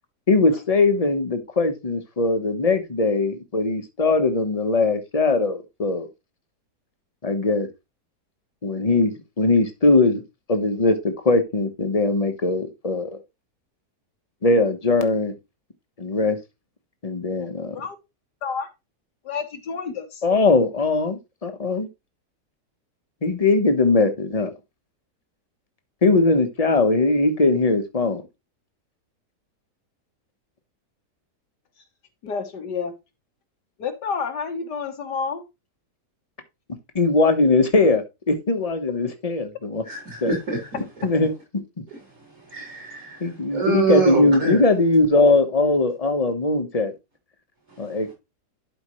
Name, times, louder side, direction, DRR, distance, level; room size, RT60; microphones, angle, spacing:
voice 1, 0.3-6.1 7.2-7.7 8.6-9.1 9.4-10.2 10.5-13.2 14.4-15.3 16.0-16.4 17.0-17.8 20.2-21.9 23.2-24.5 26.0-28.2 36.9-39.8 40.2-40.3 41.0-41.3 43.2-46.9 47.8-48.1, left 3 dB, 25° left, 1.1 m, -20 dB
voice 2, 17.4-18.0 18.4-18.7 19.2-20.2 32.2-32.9 33.8-35.4, left 5 dB, 80° left, 2.0 m, -30 dB
voice 3, 39.9-40.8 42.5-44.6 47.7-47.8, right 4 dB, 55° right, 4.4 m, -25 dB
11.5 x 5.2 x 3.1 m
omnidirectional pair, 1.8 m